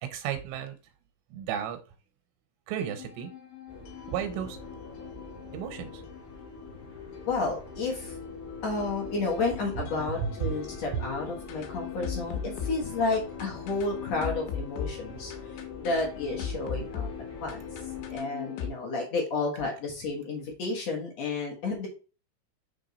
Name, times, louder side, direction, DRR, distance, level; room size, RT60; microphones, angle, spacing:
voice 1, 0.0-0.8 1.3-1.8 2.7-3.3 4.1-4.6 5.5-6.0 10.1-10.6, right 9 dB, 90° right, 8 dB, 3.1 m, -33 dB
sound 1, 2.8-18.7, left 8 dB, 85° left, 3.2 m, -40 dB
sound 2, 3.7-18.2, left 2 dB, 25° left, 1.1 m, -46 dB
voice 2, 7.3-8.2 8.6-17.1 17.4-17.6 18.1-21.9, left 3 dB, 65° left, -1 dB, 1.6 m, -31 dB
6.6 x 3.5 x 4.0 m, 0.35 s
omnidirectional pair, 5.0 m